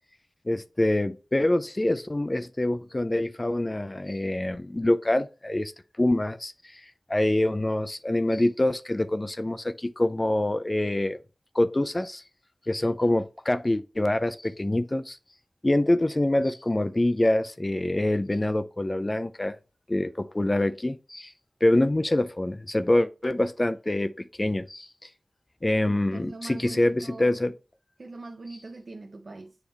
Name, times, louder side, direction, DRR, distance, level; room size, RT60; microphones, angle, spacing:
voice 1, 0.5-5.7 6.0-6.8 7.1-11.2 11.5-12.2 12.7-15.2 15.6-19.6 19.9-21.3 21.6-24.9 25.6-27.5, left 1 dB, 30° left, 0.4 m, -25 dB
voice 2, 26.1-27.4 28.0-29.6, right 3 dB, 70° right, 0.6 m, -42 dB
7.1 x 3.4 x 4.2 m
wide cardioid pair, 50°, 0 cm